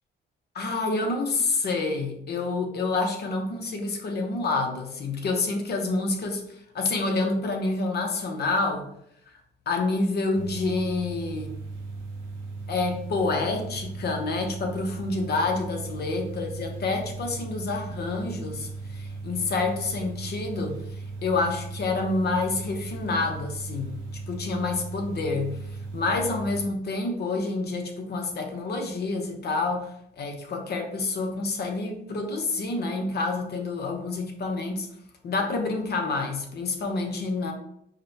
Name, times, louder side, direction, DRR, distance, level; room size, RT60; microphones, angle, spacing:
voice 1, 0.5-6.4 6.7-8.9 9.7-11.6 12.7-20.8 21.2-24.0 24.3-25.6 25.9-29.9 30.2-34.9 35.2-37.5, left 3 dB, 55° left, 3 dB, 0.8 m, -28 dB
sound 1, 10.3-26.7, right 3 dB, 85° right, 0.8 m, -37 dB
4.9 x 2.2 x 2.8 m, 0.73 s
cardioid pair, 90°, 20 cm